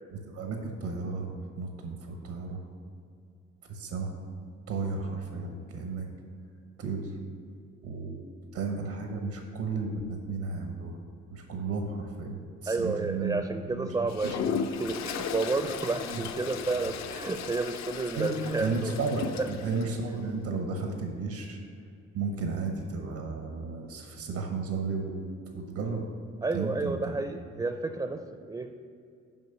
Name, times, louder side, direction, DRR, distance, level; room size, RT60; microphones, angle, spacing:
voice 1, 0.1-2.6 3.7-4.1 4.7-6.1 6.8-7.1 7.8-8.2 8.5-10.9 11.3-14.4 16.0-16.3 18.1-21.6 22.1-25.2 25.5-26.0 26.5-27.1, right 4 dB, 85° right, 3 dB, 1.1 m, -33 dB
voice 2, 12.7-19.0 19.3-19.5 26.4-28.7, right 3 dB, 15° right, 7 dB, 0.4 m, -31 dB
Toilet flush, 14.1-19.9, left 7 dB, 65° left, 0.6 m, -36 dB
7.7 x 5.1 x 6.6 m, 2.4 s
cardioid pair, 90°, 30 cm